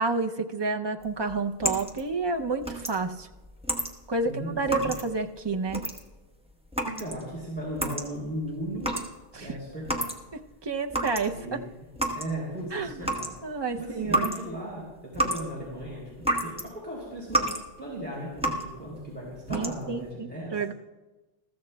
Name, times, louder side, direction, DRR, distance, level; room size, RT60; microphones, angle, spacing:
voice 1, 0.0-3.3 4.1-5.8 9.3-9.6 10.3-11.6 12.7-13.0 13.4-14.3 19.5-20.7, right 4 dB, 35° right, 4 dB, 0.5 m, -30 dB
sound 1, 1.0-10.5 10.7-16.7 17.0-17.7 18.0-18.8 19.3-20.0, right 1 dB, 5° right, 1.0 m, -32 dB
voice 2, 4.2-4.9 6.8-8.9 9.3-10.1 11.1-11.6 12.1-13.3 13.7-17.5 17.8-20.5, right 1 dB, 10° left, -5 dB, 3.2 m, -37 dB
21.5 x 14.5 x 2.2 m, 1.1 s
omnidirectional pair, 1.0 m